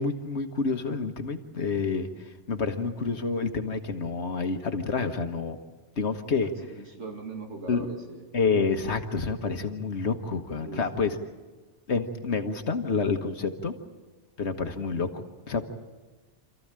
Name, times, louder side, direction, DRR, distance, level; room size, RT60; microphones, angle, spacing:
voice 1, 0.0-5.6 6.0-6.5 7.7-7.9 8.3-11.2 11.9-13.7 14.4-15.6, left 4 dB, 70° left, 7 dB, 1.6 m, -28 dB
voice 2, 6.4-8.3 10.7-11.1, right 3 dB, 85° right, 2 dB, 2.9 m, -40 dB
28.0 x 14.5 x 8.8 m, 1.3 s
omnidirectional pair, 1.2 m